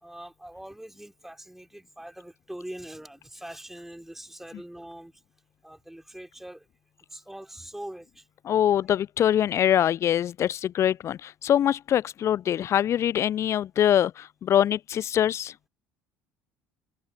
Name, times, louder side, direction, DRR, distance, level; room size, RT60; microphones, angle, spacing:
voice 1, 0.0-5.1 5.6-6.7 7.1-8.3, right 1 dB, 5° right, 3.9 m, -42 dB
voice 2, 8.5-15.5, left 10 dB, 40° left, 0.5 m, -23 dB
hypercardioid pair, 60°, 7 cm